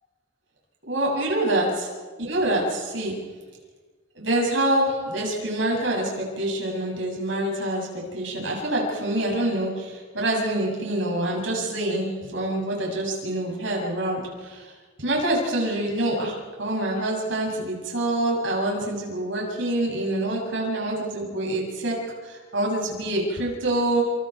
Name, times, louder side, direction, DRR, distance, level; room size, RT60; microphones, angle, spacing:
voice 1, 0.9-1.9 2.2-3.1 4.1-14.7 15.0-22.0 22.2-24.0, right 1 dB, 65° right, -1 dB, 7.7 m, -26 dB
28.5 x 27.5 x 4.8 m, 1.4 s
head